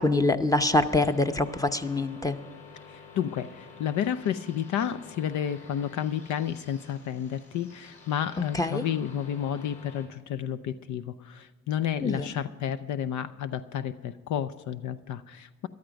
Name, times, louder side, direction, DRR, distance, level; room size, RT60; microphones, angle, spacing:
voice 1, 0.0-2.4 8.5-8.8 12.0-12.3, left 2 dB, 10° left, 9 dB, 0.8 m, -25 dB
sound 1, 0.7-10.1, left 5 dB, 50° left, 4.6 m, -50 dB
voice 2, 2.9-15.7, left 9 dB, 75° left, 13 dB, 0.6 m, -31 dB
13.5 x 12.0 x 5.2 m, 1.4 s
cardioid pair, 90°, 30 cm